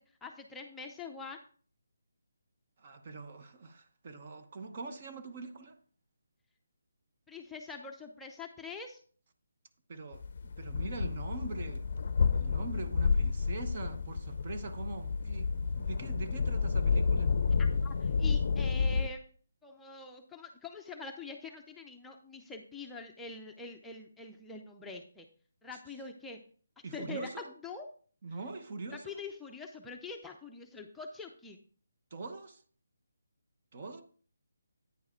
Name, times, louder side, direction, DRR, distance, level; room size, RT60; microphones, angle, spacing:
voice 1, 0.2-1.4 7.3-9.0 17.6-19.3 19.6-25.3 25.6-26.4 26.9-27.9 28.9-31.6, left 3 dB, 5° left, 0.5 m, -44 dB
voice 2, 2.8-5.8 9.9-11.9 12.3-15.5 15.7-17.3 26.8-27.5 28.2-29.2 32.1-32.6 33.7-34.0, right 3 dB, 45° right, 0.9 m, -43 dB
sound 1, 10.1-19.1, left 5 dB, 50° left, 0.5 m, -30 dB
9.2 x 4.7 x 4.3 m
figure-of-eight pair, 155°, 0 cm